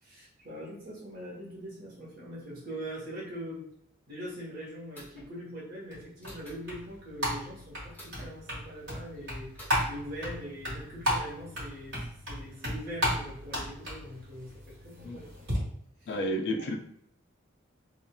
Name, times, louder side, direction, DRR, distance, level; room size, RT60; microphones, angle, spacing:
voice 1, 0.0-3.6 4.1-9.5 9.9-15.5 16.0-16.1 16.6-16.8, equal, 50° right, -4 dB, 0.9 m, -42 dB
sound 1, 4.9-5.3 6.2-6.6 7.9-8.3 9.6-9.9, equal, 10° left, 0.9 m, -48 dB
sound 2, 5.9-15.6, equal, 90° right, 1.2 m, -35 dB
voice 2, 16.1-16.8, equal, 55° left, 3 dB, 0.4 m, -31 dB
2.8 x 2.3 x 2.2 m, 0.70 s
head